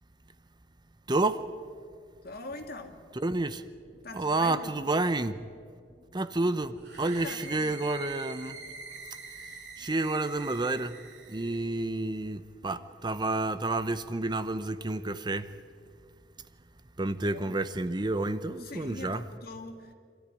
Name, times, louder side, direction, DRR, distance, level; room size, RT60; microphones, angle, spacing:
voice 1, 1.1-1.5 3.1-3.6 4.1-5.4 6.1-8.6 9.8-11.0 11.3-15.5 17.0-19.2, right 2 dB, 25° right, 0.7 m, -30 dB
voice 2, 2.2-3.0 4.0-4.8 6.9-7.8 17.2-17.6 18.5-19.9, left 2 dB, 55° left, 2.2 m, -43 dB
sound 1, 6.8-11.6, right 4 dB, 75° right, 3.2 m, -45 dB
26.5 x 13.5 x 9.8 m
head